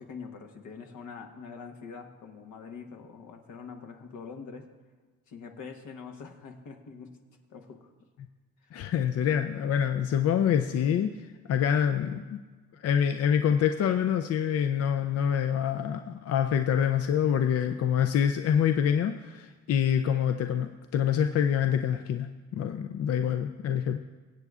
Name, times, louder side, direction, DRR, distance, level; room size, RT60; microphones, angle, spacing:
voice 1, 0.0-4.7 5.3-7.2 7.5-7.9 8.6-8.7 17.3-17.6, left 5 dB, 80° left, 4 dB, 1.2 m, -44 dB
voice 2, 8.7-11.1 11.5-12.4 12.8-24.0, left 8 dB, 55° left, 7 dB, 0.5 m, -26 dB
22.5 x 8.1 x 2.4 m, 1.3 s
cardioid pair, 90°, 30 cm